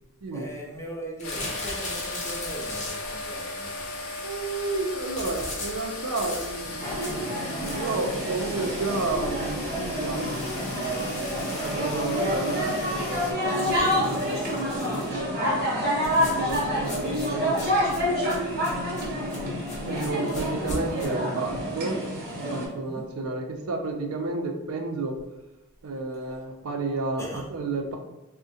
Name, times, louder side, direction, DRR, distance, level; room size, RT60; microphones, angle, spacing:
voice 1, 0.3-3.9 12.1-12.8 19.8-20.2 22.7-23.1 26.2-26.4 27.2-27.5, equal, 10° left, -3 dB, 0.5 m, -40 dB
sound 1, 1.2-13.3, left 2 dB, 65° left, 0.5 m, -37 dB
sound 2, 1.2-3.3 5.1-8.1 8.5-8.6 8.9-9.0 9.3-9.4 10.1-12.6 13.4-15.2 16.0-21.1, left 1 dB, 35° left, 0.8 m, -39 dB
voice 2, 4.2-6.9 7.7-11.3 11.6-15.7 16.2-17.7 19.9-22.0 22.5-25.2 25.8-28.0, right 3 dB, 75° right, 4 dB, 0.4 m, -31 dB
sound 3, 6.8-22.7, equal, 45° right, 0.9 m, -28 dB
3.5 x 2.1 x 2.7 m, 0.94 s
head